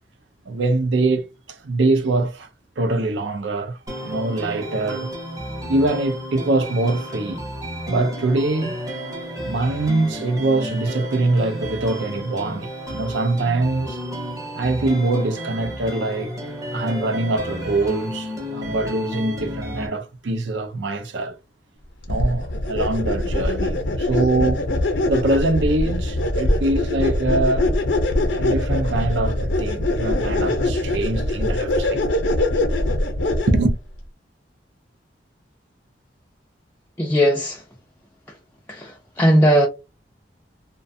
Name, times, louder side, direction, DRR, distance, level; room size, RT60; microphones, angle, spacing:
voice 1, 0.5-2.5 2.8-5.1 5.7-7.4 7.9-8.8 9.4-14.0 14.5-16.4 16.7-21.3 22.1-24.7 25.1-27.7 28.3-32.0 33.5-33.8, right 2 dB, 75° right, 0.5 m, -23 dB
sound 1, 3.9-19.9, equal, 20° right, 0.6 m, -32 dB
sound 2, 22.1-33.7, left 1 dB, 85° left, 0.6 m, -22 dB
voice 2, 37.0-37.6 38.7-39.7, equal, 10° left, 0.3 m, -18 dB
2.4 x 2.2 x 2.6 m
head